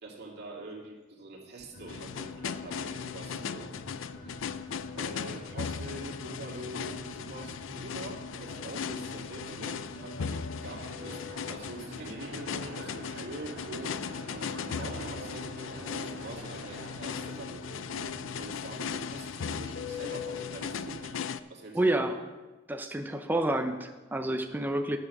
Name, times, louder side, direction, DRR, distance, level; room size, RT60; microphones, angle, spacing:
voice 1, 0.0-3.7 4.2-4.4 4.9-11.2 11.5-18.1 18.3-21.2 21.5-22.3, right 2 dB, 60° right, -1 dB, 2.3 m, -44 dB
sound 1, 1.7-21.2, left 3 dB, 70° left, 2.0 m, -46 dB
sound 2, 1.9-21.4, left 7 dB, 90° left, 0.4 m, -38 dB
sound 3, 10.6-17.3, right 2 dB, 75° right, 1.5 m, -47 dB
voice 2, 21.7-22.2 22.7-25.0, right 1 dB, 10° right, 4 dB, 0.6 m, -29 dB
11.0 x 7.2 x 6.5 m, 1.2 s
head